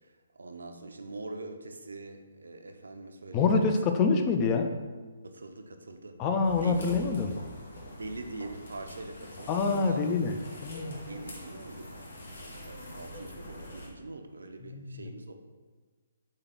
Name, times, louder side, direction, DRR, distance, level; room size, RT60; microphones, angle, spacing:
voice 1, 0.3-3.7 5.2-6.2 6.5-6.7 7.9-10.0 11.1-12.1 12.4-15.3, right 2 dB, 75° right, 6 dB, 0.5 m, -43 dB
voice 2, 3.3-4.7 6.2-7.4 9.5-10.4 10.6-11.0 14.7-15.1, left 4 dB, 25° left, 5 dB, 0.4 m, -26 dB
sound 1, 6.4-13.9, equal, 65° left, 1.1 m, -45 dB
3.9 x 3.7 x 3.4 m, 1.4 s
figure-of-eight pair, 135°, 0 cm